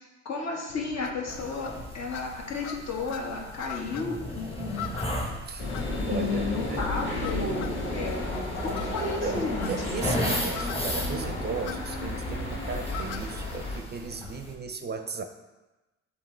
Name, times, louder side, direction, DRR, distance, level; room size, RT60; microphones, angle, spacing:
voice 1, 0.2-4.9 6.1-8.2 8.6-10.0, left 3 dB, 60° left, 0 dB, 1.3 m, -33 dB
sound 1, 0.7-14.5, left 8 dB, 90° left, 0.5 m, -44 dB
sound 2, 1.3-14.5, left 1 dB, 20° left, 1.2 m, -37 dB
sound 3, 5.6-13.8, left 1 dB, 40° left, 1.7 m, -32 dB
voice 2, 6.1-6.9 8.8-9.0 9.2-15.2, right 5 dB, 35° right, 7 dB, 0.5 m, -36 dB
7.3 x 2.9 x 4.4 m, 1.1 s
cardioid pair, 90°, 30 cm